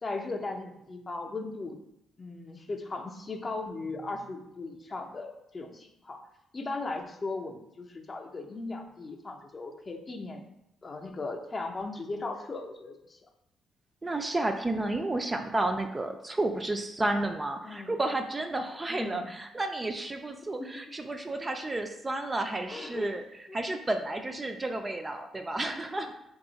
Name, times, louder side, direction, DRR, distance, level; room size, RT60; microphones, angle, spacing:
voice 1, 0.0-1.8 2.2-6.2 6.5-10.5 10.8-13.2 17.6-17.9 18.9-19.3 20.6-20.7 22.7-23.2 23.5-23.6, left 3 dB, 30° left, 3 dB, 0.5 m, -37 dB
voice 2, 14.0-23.2 23.5-26.1, right 2 dB, 20° right, 5 dB, 0.3 m, -31 dB
3.4 x 2.3 x 3.9 m, 0.83 s
cardioid pair, 90°, 0 cm